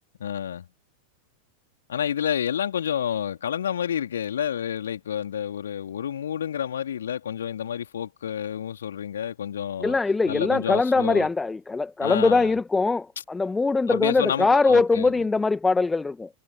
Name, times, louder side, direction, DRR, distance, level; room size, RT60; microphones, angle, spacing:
voice 1, 0.2-0.7 1.9-10.0 10.3-11.3 12.0-12.5 13.9-15.1, left 9 dB, 65° left, 3.6 m, -29 dB
voice 2, 9.8-16.3, left 3 dB, 10° left, 2.1 m, -22 dB
figure-of-eight pair, 90°, 0 cm